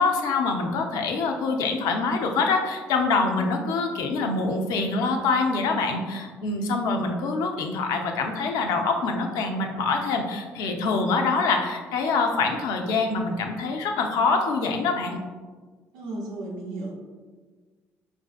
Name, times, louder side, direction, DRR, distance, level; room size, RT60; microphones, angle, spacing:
voice 1, 0.0-15.2, left 4 dB, 75° left, 3 dB, 0.4 m, -25 dB
voice 2, 15.9-16.9, right 2 dB, 80° right, -1 dB, 0.6 m, -34 dB
3.9 x 2.5 x 2.4 m, 1.4 s
hypercardioid pair, 60°, 7 cm